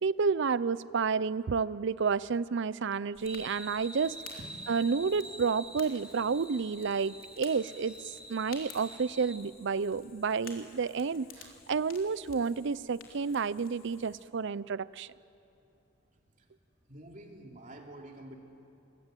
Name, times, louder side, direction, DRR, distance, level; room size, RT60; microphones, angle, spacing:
voice 1, 0.0-4.2 4.7-15.1, right 5 dB, 65° right, 18 dB, 0.5 m, -30 dB
Fire, 3.1-14.2, left 6 dB, 80° left, 3.7 m, -54 dB
sound 1, 3.2-9.4, right 1 dB, 5° right, 2.4 m, -47 dB
voice 2, 16.9-18.4, right 1 dB, 40° right, 1 dB, 3.0 m, -48 dB
23.5 x 22.5 x 9.1 m, 2.8 s
head